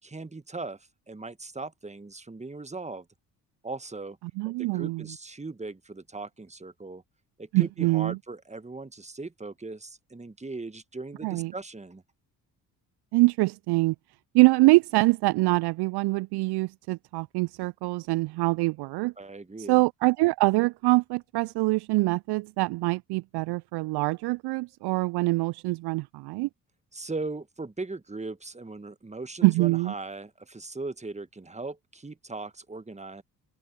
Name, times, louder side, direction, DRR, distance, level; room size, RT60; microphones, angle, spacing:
voice 1, 0.0-3.1 3.6-4.2 4.4-7.0 7.4-12.0 19.2-19.8 26.9-33.2, right 3 dB, 15° right, 1.6 m, -39 dB
voice 2, 4.4-5.0 7.5-8.2 11.2-11.5 13.1-13.9 14.3-19.1 19.7-26.5 29.4-29.9, right 22 dB, 55° right, 0.6 m, -24 dB
open air
figure-of-eight pair, 40°, 49 cm